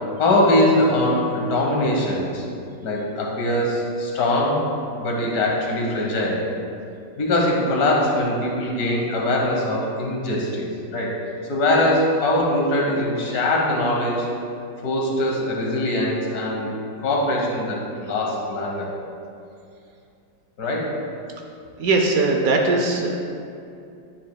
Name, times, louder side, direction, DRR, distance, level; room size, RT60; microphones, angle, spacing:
voice 1, 0.2-2.4 2.8-4.7 5.0-6.5 7.2-11.1 11.5-14.3 14.8-16.7 17.0-18.9 20.6-21.0, left 1 dB, 55° left, -2 dB, 1.6 m, -22 dB
voice 2, 21.8-23.2, right 3 dB, 65° right, 2 dB, 0.9 m, -20 dB
10.0 x 7.5 x 2.2 m, 2.5 s
omnidirectional pair, 2.0 m